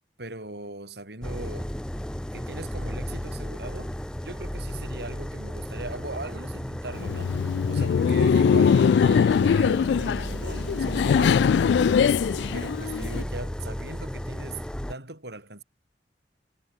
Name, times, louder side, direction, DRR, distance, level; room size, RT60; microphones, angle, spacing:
voice 1, 0.2-1.7 2.3-3.9 4.2-7.3 7.7-12.1 12.4-15.6, right 2 dB, 65° right, 6.4 m, -39 dB
sound 1, 1.2-14.9, equal, 5° left, 0.5 m, -34 dB
Laughter, 6.9-13.2, left 7 dB, 70° left, 0.3 m, -22 dB
sound 2, 7.8-13.0, left 1 dB, 40° left, 2.6 m, -38 dB
head